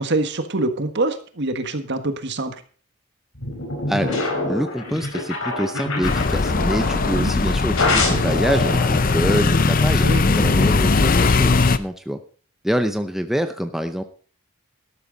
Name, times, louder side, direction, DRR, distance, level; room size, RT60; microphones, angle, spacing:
voice 1, 0.0-2.5 7.1-7.3 10.0-10.3, right 2 dB, 50° right, 8 dB, 1.5 m, -25 dB
sound 1, 3.4-7.2 7.8-10.7, left 2 dB, 65° left, 4.4 m, -26 dB
voice 2, 3.9-10.0 10.3-12.2 12.6-14.0, equal, ahead, 7 dB, 0.6 m, -25 dB
sound 2, 6.0-11.8, left 3 dB, 40° left, 0.6 m, -19 dB
12.5 x 12.5 x 4.0 m, 0.40 s
head